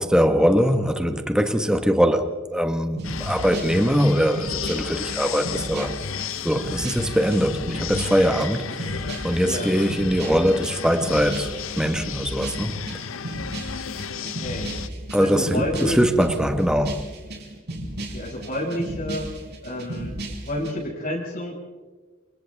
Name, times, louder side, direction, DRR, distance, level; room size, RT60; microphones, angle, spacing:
voice 1, 0.0-6.0 6.4-12.8 15.1-17.0, equal, 5° right, 1.4 m, -22 dB
sound 1, 3.0-14.9, left 7 dB, 70° left, 0.8 m, -34 dB
sound 2, 3.0-20.7, right 1 dB, 55° right, 5.2 m, -34 dB
voice 2, 9.4-9.7 14.2-14.7 15.2-16.3 18.0-19.3 19.6-21.5, left 1 dB, 45° left, 5.7 m, -30 dB
30.0 x 28.0 x 3.5 m
head